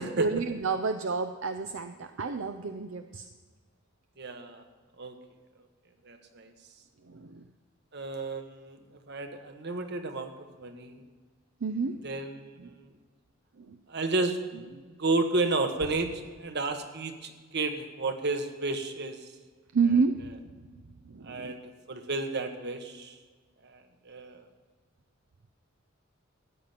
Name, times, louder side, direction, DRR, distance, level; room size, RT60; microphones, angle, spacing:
voice 1, 0.0-3.3 7.1-7.4 11.6-12.1 12.6-12.7 13.6-13.8 19.7-20.3 21.1-21.5, right 4 dB, 75° right, 8 dB, 0.6 m, -30 dB
voice 2, 4.2-4.6 5.0-5.1 6.0-6.5 7.9-10.3 10.6-11.0 12.0-12.9 13.9-14.4 14.9-19.3 21.2-23.2 23.6-24.5, right 3 dB, 55° right, 6 dB, 1.3 m, -32 dB
14.0 x 9.3 x 5.8 m, 1.4 s
head